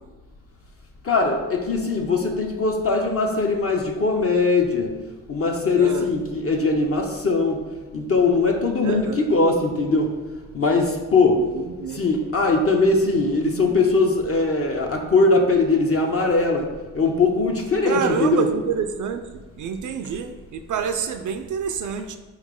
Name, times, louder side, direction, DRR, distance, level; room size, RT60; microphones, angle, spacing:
voice 1, 1.0-4.9 5.3-7.6 7.9-10.1 10.5-11.4 11.9-18.5, left 3 dB, 35° left, 2 dB, 0.7 m, -20 dB
voice 2, 5.8-6.1 8.8-9.3 11.3-12.0 17.8-22.2, right 6 dB, 50° right, 8 dB, 0.4 m, -28 dB
4.6 x 3.1 x 3.7 m, 1.3 s
hypercardioid pair, 45°, 40 cm